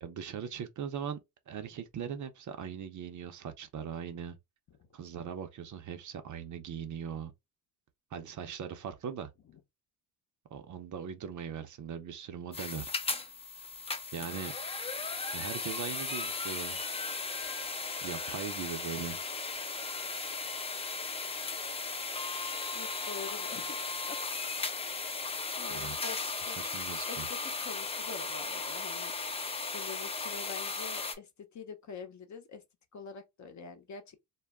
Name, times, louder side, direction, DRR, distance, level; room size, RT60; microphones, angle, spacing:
voice 1, 0.0-1.2 1.5-4.4 4.9-7.3 8.1-9.3 10.5-12.9 14.1-14.6 15.3-16.8 18.0-19.2 25.7-26.0 26.6-27.3, right 8 dB, 45° right, 0.6 m, -40 dB
sound 1, 12.5-31.1, left 4 dB, 15° left, 0.4 m, -36 dB
voice 2, 22.7-23.8 24.1-24.2 25.6-26.2 26.5-26.6 27.0-29.1 29.7-32.6 32.9-34.2, left 5 dB, 45° left, 0.8 m, -45 dB
2.3 x 2.0 x 3.4 m
supercardioid pair, 85°, 42 cm